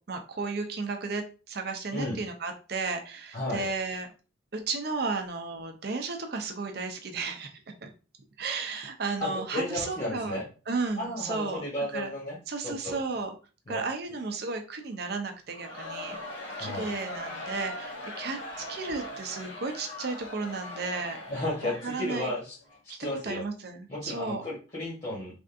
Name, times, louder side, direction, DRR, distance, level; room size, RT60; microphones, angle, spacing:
voice 1, 0.1-4.1 4.5-7.5 7.8-7.9 8.4-10.4 10.7-11.6 11.9-12.1 12.5-13.3 13.7-16.2 16.6-18.4 18.7-21.2 21.6-22.3 22.9-23.0 23.2-24.4, right 4 dB, 50° right, 5 dB, 0.5 m, -33 dB
voice 2, 3.3-3.7 9.2-10.5 11.0-12.4 12.6-13.0 13.7-13.8 16.6-16.9 21.3-22.5 23.0-23.4 23.9-25.4, left 1 dB, 30° left, -6 dB, 1.0 m, -33 dB
Crowd, 15.5-22.8, left 1 dB, 65° left, 1.1 m, -40 dB
3.4 x 2.5 x 2.5 m, 0.35 s
head